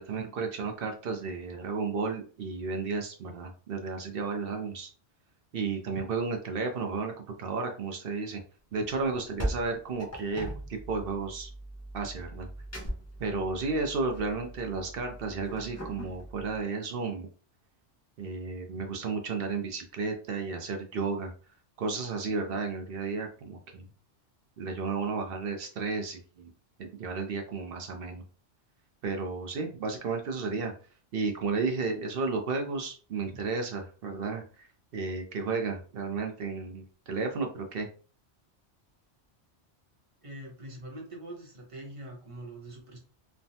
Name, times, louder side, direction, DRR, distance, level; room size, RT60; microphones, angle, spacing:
voice 1, 0.0-4.9 5.5-8.4 8.7-11.5 11.9-12.5 13.2-17.3 18.2-21.3 21.8-23.8 24.6-26.5 26.8-28.2 29.0-30.7 31.1-34.7 34.9-37.9, right 4 dB, 60° right, 4 dB, 0.7 m, -33 dB
sound 1, 9.1-16.6, right 1 dB, 20° left, 0.4 m, -40 dB
voice 2, 40.2-43.0, right 1 dB, 30° right, -1 dB, 0.8 m, -43 dB
3.3 x 2.1 x 2.7 m, 0.39 s
omnidirectional pair, 1.2 m